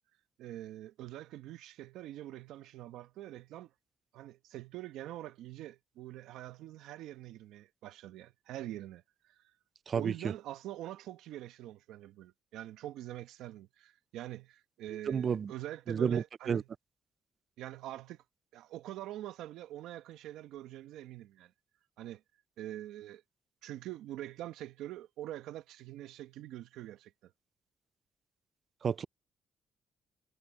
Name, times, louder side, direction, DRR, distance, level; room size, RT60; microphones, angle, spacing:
voice 1, 0.4-3.7 4.1-9.4 9.9-16.7 17.6-18.2 18.5-21.5 22.0-22.2 22.6-23.2 23.6-27.3, right 13 dB, 90° right, 1.2 m, -44 dB
voice 2, 15.1-15.5 15.9-16.6 28.8-29.1, right 7 dB, 50° right, 0.4 m, -30 dB
cardioid pair, 90°, 0 cm